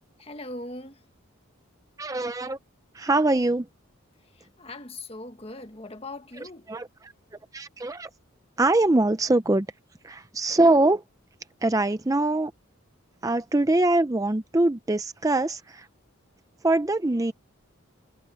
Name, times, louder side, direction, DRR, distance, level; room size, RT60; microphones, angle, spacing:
voice 1, 0.2-1.0 4.2-6.7, left 2 dB, 25° left, 1.4 m, -40 dB
voice 2, 2.0-2.6 2.9-3.7 6.7-6.9 7.5-8.1 8.6-9.7 10.0-11.0 11.6-12.5 13.2-15.9 16.6-17.3, right 2 dB, 15° right, 0.5 m, -23 dB
head